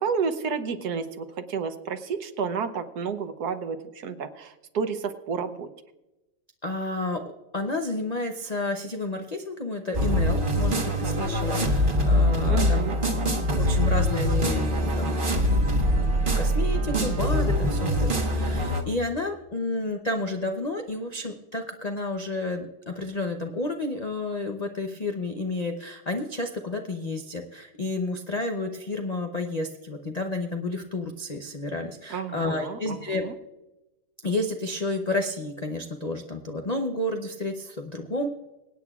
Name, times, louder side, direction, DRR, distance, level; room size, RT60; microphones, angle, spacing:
voice 1, 0.0-5.7 12.5-13.3 32.1-33.4, right 6 dB, 65° right, 9 dB, 1.3 m, -31 dB
voice 2, 6.6-7.2 7.5-12.8 13.6-33.2 34.2-38.3, left 2 dB, 80° left, 4 dB, 0.3 m, -31 dB
sound 1, 9.9-18.8, equal, 30° right, 1.3 m, -23 dB
26.0 x 9.0 x 2.4 m, 1.0 s
omnidirectional pair, 2.0 m